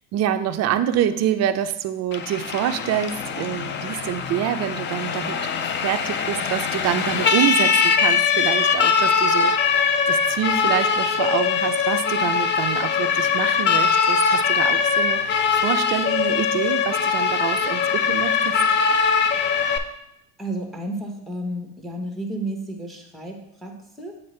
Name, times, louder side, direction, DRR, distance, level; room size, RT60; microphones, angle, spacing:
voice 1, 0.1-18.6, right 10 dB, 35° right, 9 dB, 0.4 m, -26 dB
Siren, 2.1-19.8, left 6 dB, 25° left, 0.4 m, -21 dB
voice 2, 20.4-24.2, right 1 dB, ahead, 2 dB, 1.1 m, -32 dB
7.6 x 4.0 x 3.2 m, 0.82 s
supercardioid pair, 100°, 45 cm